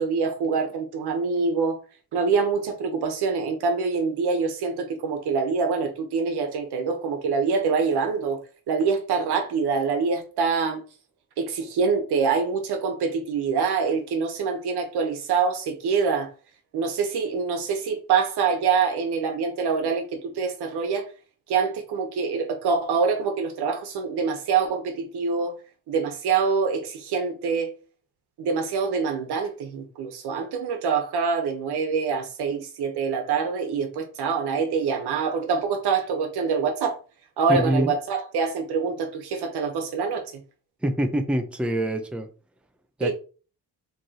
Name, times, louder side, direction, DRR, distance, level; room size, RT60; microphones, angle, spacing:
voice 1, 0.0-1.8 2.1-8.4 8.7-10.8 11.4-16.3 16.7-21.0 21.5-25.5 25.9-27.7 28.4-37.0 37.4-40.2 43.0-43.1, right 5 dB, 90° right, 1.1 m, -25 dB
voice 2, 37.5-37.9 40.8-42.3 43.0-43.1, right 1 dB, 5° right, 0.5 m, -25 dB
4.9 x 3.2 x 2.9 m
cardioid pair, 100°, 38 cm